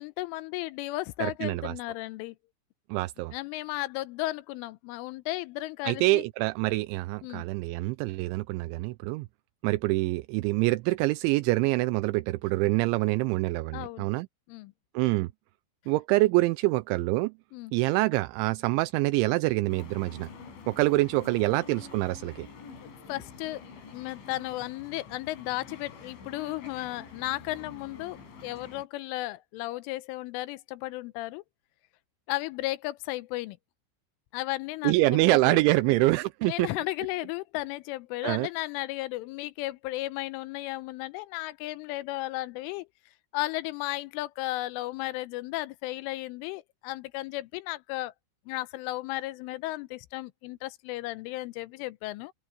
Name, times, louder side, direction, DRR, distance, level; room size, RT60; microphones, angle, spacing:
voice 1, 0.0-2.4 3.3-6.2 7.2-7.4 13.7-14.1 14.5-14.7 17.5-17.7 23.1-23.6 23.9-31.4 32.3-33.6 34.3-35.6 36.4-42.9 43.3-48.1 48.5-52.3, left 18 dB, 85° left, 3.3 m, -34 dB
voice 2, 1.2-1.7 2.9-3.3 5.8-9.3 9.6-14.3 14.9-15.3 15.9-17.3 17.7-20.3 20.7-22.5 34.8-36.7 38.2-38.5, right 20 dB, 80° right, 2.8 m, -25 dB
sound 1, 19.7-28.8, left 5 dB, 70° left, 6.9 m, -47 dB
omnidirectional pair, 5.7 m